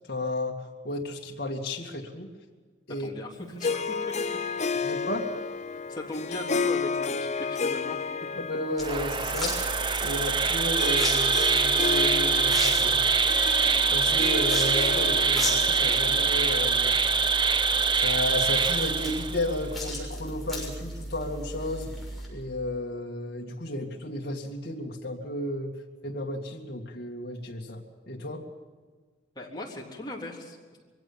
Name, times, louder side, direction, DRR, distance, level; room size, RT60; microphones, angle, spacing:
voice 1, 0.1-0.6 0.8-2.3 2.9-3.1 4.8-5.3 8.5-9.7 10.0-13.1 13.4-13.5 13.9-17.0 17.9-21.9 22.3-25.7 26.0-28.4, left 1 dB, 60° left, -1 dB, 2.3 m, -33 dB
voice 2, 3.0-4.1 4.7-5.0 5.7-8.1 8.3-8.4 29.4-30.6, left 1 dB, 25° left, -2 dB, 3.5 m, -39 dB
Harp, 3.6-17.2, left 5 dB, 40° left, 0.8 m, -32 dB
sound 1, 8.8-22.3, equal, ahead, 6.7 m, -36 dB
Insect, 8.8-19.6, right 5 dB, 25° right, 0.8 m, -24 dB
23.0 x 16.5 x 7.2 m, 1.5 s
head